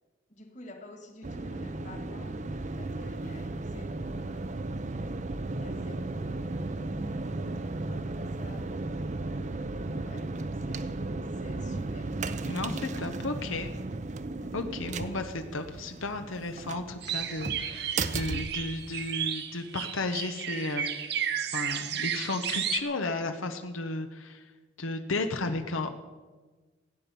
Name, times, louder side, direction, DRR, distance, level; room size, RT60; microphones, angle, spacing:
voice 1, 0.3-8.8 9.2-12.4 13.3-13.7 14.3-14.5, left 1 dB, 35° left, 5 dB, 1.8 m, -50 dB
sound 1, 1.2-19.3, right 2 dB, 35° right, 0.6 m, -35 dB
voice 2, 12.5-13.7 14.5-24.4 24.8-25.9, left 3 dB, 90° left, 7 dB, 1.0 m, -34 dB
sound 2, 17.0-22.8, right 9 dB, 55° right, 1.0 m, -33 dB
16.0 x 9.2 x 7.0 m, 1.3 s
head